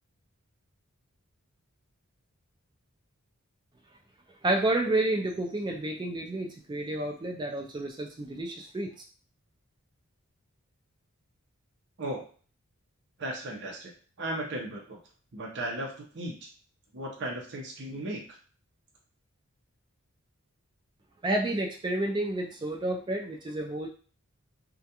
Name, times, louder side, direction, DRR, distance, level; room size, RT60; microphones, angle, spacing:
voice 1, 4.4-8.9 21.2-23.9, right 2 dB, 20° right, 1 dB, 0.3 m, -30 dB
voice 2, 13.2-13.9 14.2-15.0 15.3-15.9 16.1-16.5 16.9-18.2, right 1 dB, 55° right, 0 dB, 0.6 m, -35 dB
2.4 x 2.2 x 2.8 m, 0.40 s
head